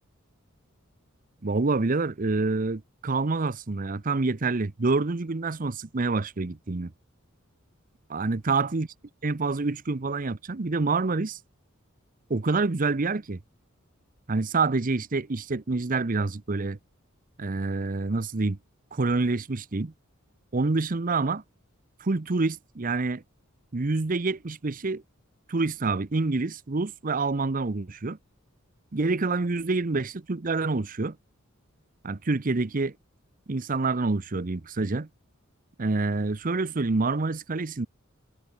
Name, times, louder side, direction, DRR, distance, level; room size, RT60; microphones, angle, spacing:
voice 1, 1.4-6.9 8.1-8.9 9.2-11.4 12.3-13.4 14.3-16.8 17.4-18.6 18.9-19.9 20.5-21.4 22.0-23.2 23.7-25.0 25.5-28.2 28.9-31.2 32.0-32.9 33.5-35.1 35.8-37.9, right 3 dB, 40° right, 0.8 m, -27 dB
head